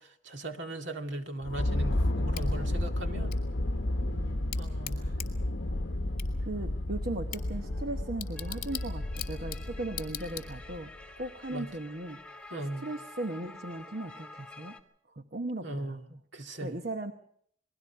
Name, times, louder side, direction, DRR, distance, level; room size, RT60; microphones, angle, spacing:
voice 1, 0.0-3.4 4.6-5.1 11.5-11.7 12.5-12.9 15.6-16.1 16.3-16.8, right 1 dB, 65° right, 2.3 m, -38 dB
sound 1, 1.4-11.0, left 1 dB, 65° left, 1.1 m, -32 dB
Bicycle / Tick, 2.3-10.9, left 11 dB, 45° left, 2.9 m, -45 dB
voice 2, 2.3-2.8 3.1-3.5 4.1-4.5 5.0-5.2 6.4-12.4 12.8-14.8 15.1-17.1, right 2 dB, 50° right, 1.0 m, -38 dB
sound 2, 7.3-14.8, left 2 dB, 5° left, 1.6 m, -50 dB
29.5 x 21.5 x 4.6 m
head